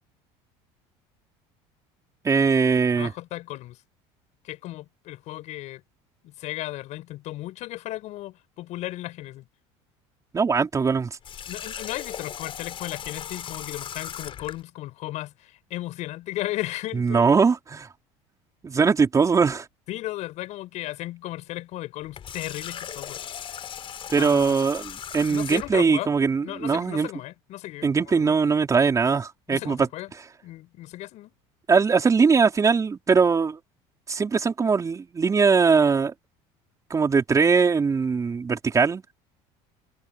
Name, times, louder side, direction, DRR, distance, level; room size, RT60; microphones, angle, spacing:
voice 1, 2.2-3.1 10.3-11.1 16.9-17.9 18.6-19.7 24.1-27.1 27.8-29.9 31.7-33.6 34.1-36.1 36.9-39.0, right 5 dB, 25° right, 4.3 m, -21 dB
voice 2, 2.9-3.8 4.4-5.8 6.2-9.5 11.5-17.3 19.9-23.2 24.1-24.6 25.3-26.1 26.4-28.4 29.5-30.1 30.4-31.3, left 16 dB, 60° left, 6.3 m, -35 dB
Water tap faucet, 11.2-14.6 22.0-25.9, left 9 dB, 40° left, 5.2 m, -38 dB
supercardioid pair, 110°, 13 cm